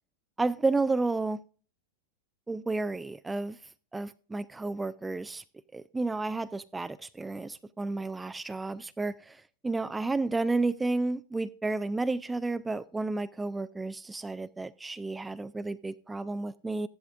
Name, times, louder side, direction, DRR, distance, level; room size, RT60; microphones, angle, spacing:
voice 1, 0.4-1.4 2.5-3.6 3.9-5.4 5.7-16.9, right 3 dB, 10° right, 0.4 m, -31 dB
14.0 x 11.5 x 2.5 m
figure-of-eight pair, 90°, 0 cm